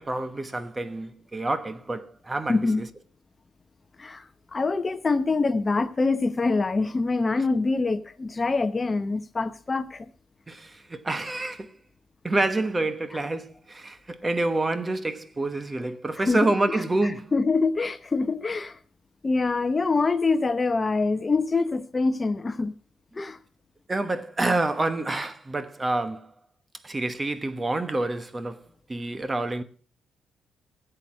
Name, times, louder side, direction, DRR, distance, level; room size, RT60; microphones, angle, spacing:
voice 1, 0.0-2.9 10.5-11.8 12.2-17.3 23.9-26.3 26.8-28.6 28.9-29.6, right 2 dB, 20° right, 1.1 m, -28 dB
voice 2, 2.5-2.8 4.0-10.1 16.3-16.8 17.3-18.8 19.2-22.7 23.1-23.4, left 3 dB, 30° left, 0.8 m, -25 dB
15.5 x 7.8 x 6.3 m
cardioid pair, 90°, 0 cm